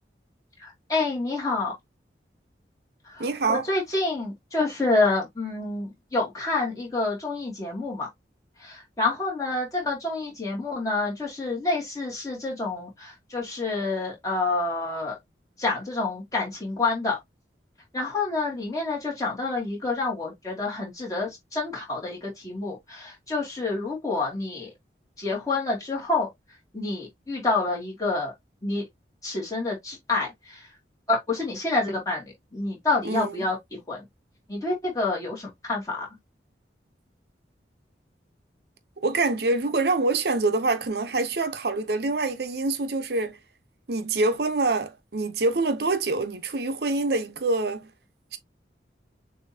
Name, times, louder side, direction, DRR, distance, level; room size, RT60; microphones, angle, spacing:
voice 1, 0.6-1.7 3.0-8.1 8.6-15.2 15.6-17.2 17.9-24.7 25.2-26.3 26.7-28.3 28.6-28.8 29.2-30.7 31.1-34.0 34.5-36.1, left 3 dB, 20° left, 2.3 m, -28 dB
voice 2, 3.2-3.6 33.0-33.3 39.0-43.4 43.9-47.9 48.3-48.4, right 3 dB, 65° right, 0.8 m, -25 dB
6.6 x 2.8 x 2.8 m
head